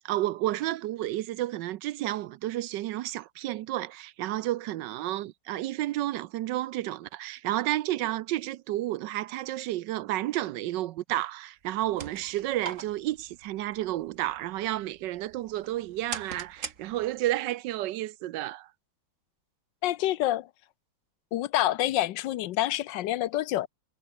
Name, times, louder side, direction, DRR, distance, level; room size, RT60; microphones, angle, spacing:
voice 1, 0.0-18.7, right 14 dB, 75° right, 1.2 m, -31 dB
sound 1, 11.6-17.4, right 6 dB, 45° right, 1.8 m, -43 dB
voice 2, 19.8-20.5 21.3-23.7, left 14 dB, 75° left, 1.3 m, -27 dB
omnidirectional pair, 2.0 m